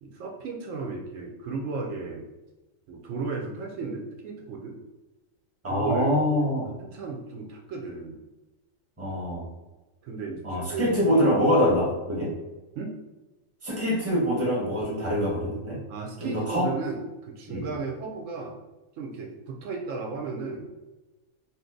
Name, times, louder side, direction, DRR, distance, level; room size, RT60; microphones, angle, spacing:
voice 1, 0.0-2.3 2.9-4.7 5.7-6.5 6.8-8.2 10.0-11.2 11.5-11.7 12.8-13.0 15.9-18.6 19.0-20.7, right 4 dB, 75° right, 0 dB, 0.9 m, -35 dB
voice 2, 5.6-6.7 9.0-9.5 10.4-12.3 13.6-15.8 16.2-16.7 17.5-17.7, equal, 10° right, -5 dB, 1.0 m, -24 dB
2.7 x 2.4 x 3.7 m, 1.1 s
omnidirectional pair, 1.4 m